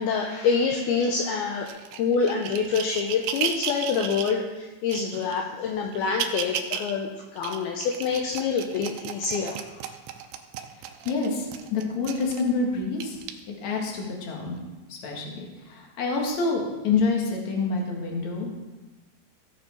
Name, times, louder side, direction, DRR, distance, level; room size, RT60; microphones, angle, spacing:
voice 1, 0.0-9.8, left 5 dB, 75° left, 1 dB, 2.4 m, -26 dB
sound 1, 1.7-4.4 4.9-5.4 5.9-6.9 7.4-12.5 13.0-13.3 14.0-14.1, right 9 dB, 85° right, 3.2 m, -34 dB
voice 2, 11.0-13.2 13.5-14.6 14.9-18.6, left 4 dB, 50° left, 0 dB, 2.6 m, -27 dB
17.5 x 7.1 x 4.5 m, 1.2 s
omnidirectional pair, 5.2 m